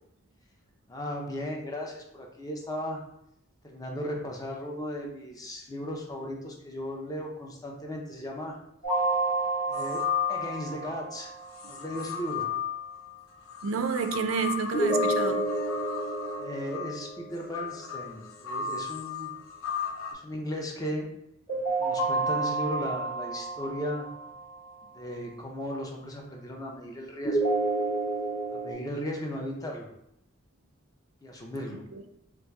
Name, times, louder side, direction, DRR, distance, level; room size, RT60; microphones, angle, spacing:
voice 1, 0.9-3.0 3.6-8.6 9.7-10.0 10.3-11.3 11.7-12.5 16.4-19.3 20.1-21.1 21.5-24.1 24.9-27.5 28.5-29.9 31.2-31.8, equal, 20° left, 0 dB, 0.5 m, -36 dB
sound 1, 8.8-11.8 14.7-17.8 21.5-24.7 27.2-28.7, right 2 dB, 40° left, 1.2 m, -30 dB
sound 2, 9.7-11.0 11.5-20.1, left 8 dB, 80° left, 0.4 m, -35 dB
voice 2, 13.6-15.4 31.9-32.0, right 5 dB, 80° right, 7 dB, 0.4 m, -30 dB
4.4 x 2.4 x 2.2 m, 0.77 s
head